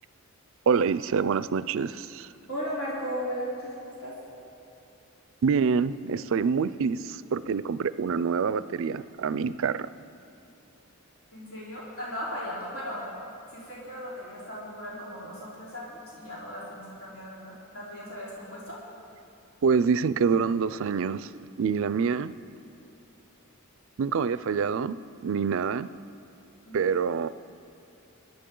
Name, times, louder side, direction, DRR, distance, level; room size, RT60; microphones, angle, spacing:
voice 1, 0.7-2.3 5.4-9.9 19.6-21.3 21.6-22.3 24.0-25.0 25.2-25.9 26.7-27.3, right 6 dB, 60° right, 16 dB, 0.4 m, -26 dB
voice 2, 2.5-4.2 11.3-13.1 13.5-18.8 26.7-26.9, equal, 65° left, -8 dB, 3.6 m, -37 dB
26.0 x 10.5 x 3.8 m, 2.8 s
head